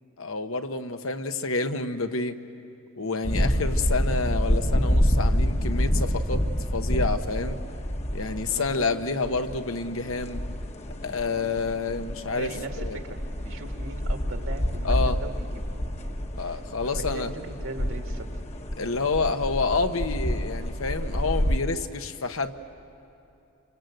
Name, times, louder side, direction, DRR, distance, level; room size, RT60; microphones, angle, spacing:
voice 1, 0.2-2.4 3.0-6.5 6.7-7.6 8.1-10.4 11.0-13.0 14.8-15.2 16.4-17.3 18.8-22.5, left 3 dB, 80° left, 7 dB, 1.2 m, -28 dB
sound 1, 3.2-21.6, equal, 30° left, 1.1 m, -28 dB
voice 2, 8.5-8.8 12.4-15.6 16.0-18.3, right 2 dB, 70° right, 4 dB, 2.2 m, -40 dB
28.0 x 25.0 x 7.9 m, 2.8 s
head